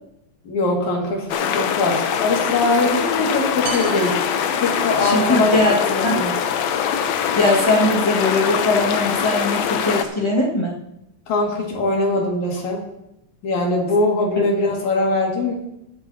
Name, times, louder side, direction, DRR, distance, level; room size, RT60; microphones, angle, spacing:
voice 1, 0.4-4.1 4.6-6.3 11.3-12.8 13.4-15.5, left 2 dB, 60° left, -1 dB, 3.4 m, -21 dB
sound 1, 1.3-10.0, left 8 dB, 75° left, 1.6 m, -23 dB
sound 2, 3.7-5.4, right 3 dB, 70° right, 2.5 m, -34 dB
voice 2, 5.0-5.8 6.0-6.2 7.3-10.8 14.4-14.5, left 2 dB, 35° left, -5 dB, 0.4 m, -20 dB
20.5 x 8.8 x 2.8 m, 0.85 s
omnidirectional pair, 4.0 m